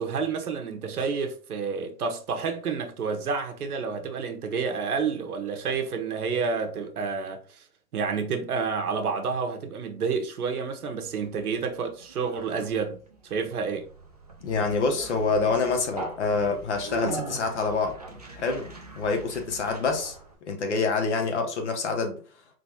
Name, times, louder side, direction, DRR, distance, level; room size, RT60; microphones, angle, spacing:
voice 1, 0.0-7.6 7.9-13.0 13.2-13.9, right 5 dB, 70° right, 1.2 m, -29 dB
Conversation, 11.0-20.3, right 2 dB, 25° right, 0.4 m, -40 dB
voice 2, 14.4-17.9 18.4-20.2 20.5-22.2, left 4 dB, 45° left, 1.0 m, -26 dB
4.7 x 3.9 x 2.9 m
hypercardioid pair, 165°, 47 cm